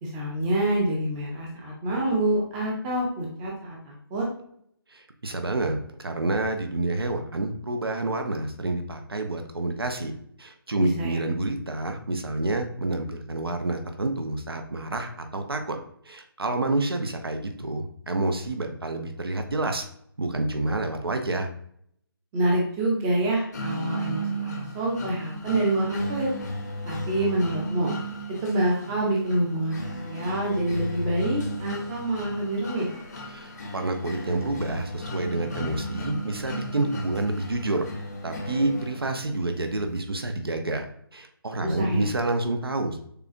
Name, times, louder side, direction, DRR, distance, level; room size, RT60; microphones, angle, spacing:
voice 1, 0.0-4.3 10.8-11.2 22.3-26.3 26.8-27.9 28.4-32.9 41.6-42.1, right 1 dB, 15° right, -2 dB, 0.6 m, -27 dB
voice 2, 4.9-10.1 10.4-15.8 16.1-19.8 20.2-21.5 33.3-37.9 38.2-40.9 41.1-43.0, right 2 dB, 75° right, 5 dB, 0.7 m, -28 dB
sound 1, 23.5-39.5, right 1 dB, 45° left, 0.7 m, -35 dB
6.7 x 2.3 x 2.5 m, 0.67 s
figure-of-eight pair, 150°, 13 cm